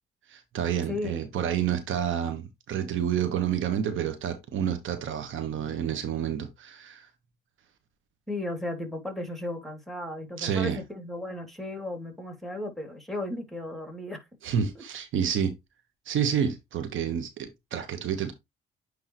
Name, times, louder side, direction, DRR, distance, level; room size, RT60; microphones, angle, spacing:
voice 1, 0.3-7.1 10.4-10.8 14.4-15.5 16.1-18.3, right 8 dB, 70° right, 1.3 m, -29 dB
voice 2, 0.9-1.2 8.3-14.3 14.5-14.8, left 1 dB, ahead, 2.7 m, -35 dB
9.0 x 3.7 x 3.1 m
supercardioid pair, 65°, 21 cm